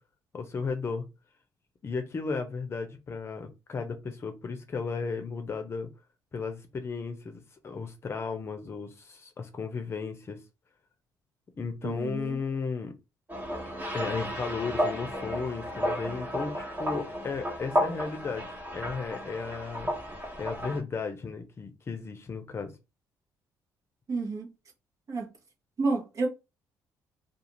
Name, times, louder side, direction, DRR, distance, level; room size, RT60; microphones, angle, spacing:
voice 1, 0.3-1.0 1.8-5.9 6.3-10.4 11.6-12.9 13.9-19.9 20.4-22.7, left 4 dB, 35° left, 0.6 m, -34 dB
voice 2, 11.8-12.4 24.1-24.5 25.1-25.3 25.8-26.3, right 3 dB, 50° right, 1.0 m, -30 dB
sound 1, 13.3-20.8, equal, 25° right, 1.1 m, -33 dB
2.5 x 2.4 x 3.0 m
cardioid pair, 85°, 7 cm